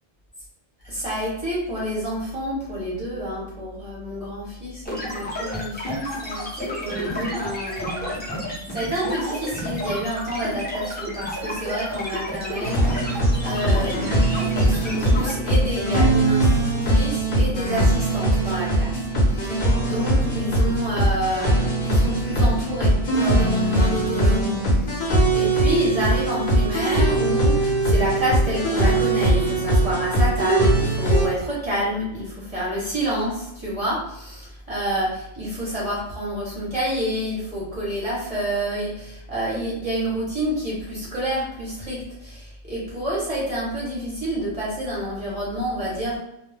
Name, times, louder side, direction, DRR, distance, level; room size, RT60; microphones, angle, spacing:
voice 1, 0.8-8.3 8.7-18.9 19.2-46.2, equal, 35° right, -6 dB, 0.6 m, -28 dB
sound 1, 4.9-15.3, equal, 15° left, 0.4 m, -31 dB
sound 2, 12.6-31.3, right 1 dB, 50° left, 0.8 m, -21 dB
2.2 x 2.0 x 3.2 m, 0.81 s
omnidirectional pair, 1.3 m